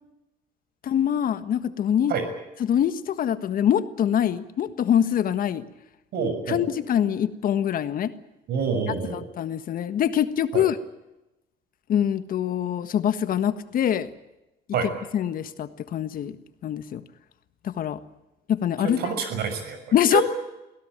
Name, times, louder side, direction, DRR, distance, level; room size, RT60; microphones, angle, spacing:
voice 1, 0.8-2.1 2.6-5.6 6.5-8.1 9.1-10.8 11.9-14.1 15.1-16.3 16.6-17.0 17.6-18.0 18.5-19.0 19.9-20.2, left 9 dB, 55° left, 12 dB, 1.5 m, -24 dB
voice 2, 6.1-6.6 8.5-9.2 10.5-10.6 14.7-14.9 18.8-19.8 20.1-20.2, right 6 dB, 70° right, 8 dB, 6.4 m, -27 dB
24.0 x 17.0 x 9.0 m, 0.95 s
cardioid pair, 110°, 17 cm